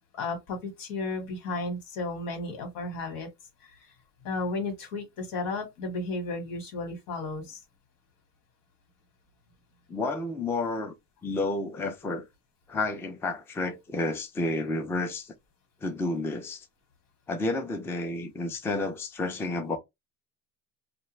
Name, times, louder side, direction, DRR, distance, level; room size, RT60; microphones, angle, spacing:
voice 1, 0.1-3.3 3.6-3.9 4.2-7.6, left 3 dB, 90° left, 1.5 m, -33 dB
voice 2, 9.9-10.9 11.2-12.2 12.7-15.3 15.8-16.7 17.3-19.8, left 2 dB, 10° left, 0.3 m, -30 dB
2.4 x 2.2 x 3.0 m
cardioid pair, 150°, 34 cm